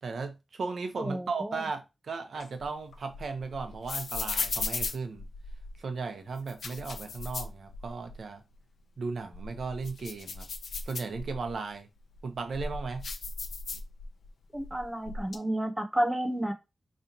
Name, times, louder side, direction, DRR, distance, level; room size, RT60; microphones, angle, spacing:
voice 1, 0.0-5.3 5.8-8.4 9.0-10.5 10.8-11.9 12.2-13.1, right 4 dB, 75° right, 0.9 m, -36 dB
voice 2, 1.0-1.6 14.5-16.5, right 1 dB, 10° right, 1.0 m, -31 dB
sound 1, 2.3-5.8 6.4-8.2 8.5-8.6 9.2-11.5 12.1-14.3 14.6-15.4, left 4 dB, 80° left, 0.7 m, -37 dB
5.3 x 3.2 x 2.9 m
wide cardioid pair, 100°, 0 cm